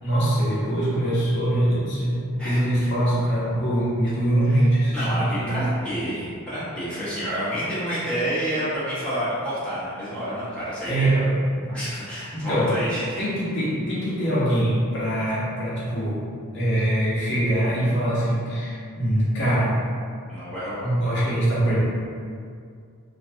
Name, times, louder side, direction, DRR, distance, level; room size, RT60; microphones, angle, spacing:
voice 1, 0.0-5.6 10.9-11.2 11.6-11.7 12.3-12.8 13.2-19.8 20.8-21.8, right 1 dB, 55° left, -9 dB, 0.7 m, -23 dB
voice 2, 2.4-2.9 4.4-4.6 4.9-11.3 11.7-13.2 20.3-21.0, equal, 5° left, -12 dB, 0.8 m, -29 dB
2.5 x 2.2 x 2.6 m, 2.2 s
head